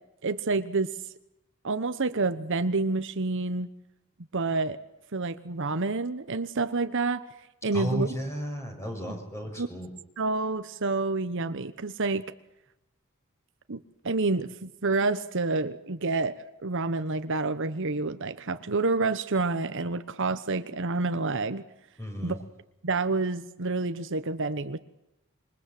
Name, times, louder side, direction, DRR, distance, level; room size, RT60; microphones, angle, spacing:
voice 1, 0.2-0.9 1.6-3.7 4.3-4.8 5.1-7.2 7.6-8.1 9.6-9.7 10.2-12.2 13.7-21.6 22.2-22.3 22.8-24.8, right 3 dB, 60° right, 11 dB, 1.1 m, -28 dB
voice 2, 7.7-9.9 22.0-22.4, equal, 15° left, 3 dB, 6.6 m, -33 dB
27.0 x 24.0 x 7.8 m, 0.88 s
head